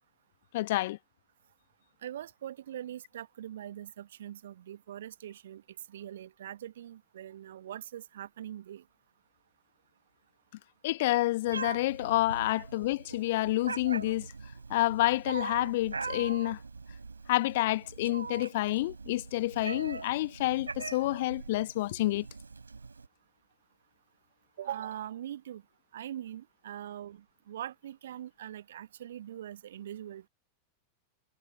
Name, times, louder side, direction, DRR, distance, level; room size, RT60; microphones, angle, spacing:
voice 1, 0.5-1.0 10.8-14.3 14.7-16.6 17.3-22.3, left 17 dB, 55° left, 1.0 m, -29 dB
voice 2, 2.0-5.6 5.9-8.8 12.5-12.6 24.6-25.6 25.9-30.3, right 11 dB, 60° right, 1.1 m, -42 dB
Meow, 11.5-23.1, right 4 dB, 80° right, 3.9 m, -42 dB
figure-of-eight pair, 90°, 0 cm